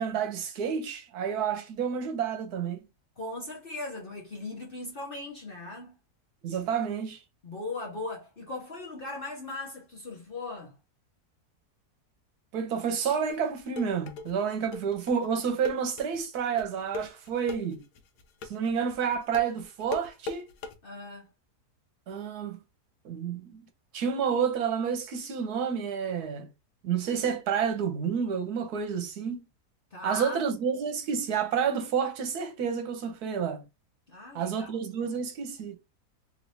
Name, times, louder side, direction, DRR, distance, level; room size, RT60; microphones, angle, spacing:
voice 1, 0.0-2.8 6.4-7.2 12.5-17.8 18.5-20.5 22.1-22.6 23.0-23.7 23.9-26.5 26.8-29.5 30.0-33.6 34.3-35.8, right 7 dB, 75° right, 1.3 m, -29 dB
voice 2, 3.2-5.9 7.4-10.7 20.8-21.3 29.9-30.4 34.1-35.1, left 2 dB, 45° left, 0.9 m, -39 dB
sound 1, 13.3-20.7, left 3 dB, 85° left, 1.2 m, -39 dB
3.2 x 3.1 x 2.7 m
omnidirectional pair, 1.7 m